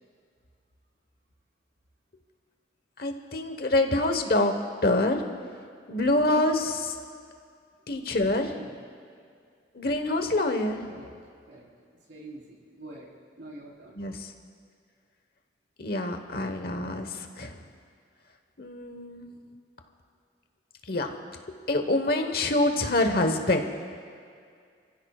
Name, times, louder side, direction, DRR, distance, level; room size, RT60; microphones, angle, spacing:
voice 1, 3.0-4.5 4.8-5.2 5.9-6.9 7.9-8.6 9.7-10.8 14.0-14.3 15.8-17.6 18.6-19.3 20.9-21.1 21.5-23.7, left 2 dB, 55° left, 5 dB, 1.2 m, -26 dB
voice 2, 12.1-13.1 13.4-14.0, right 1 dB, 90° right, -5 dB, 4.2 m, -45 dB
29.0 x 15.5 x 2.4 m, 2.2 s
head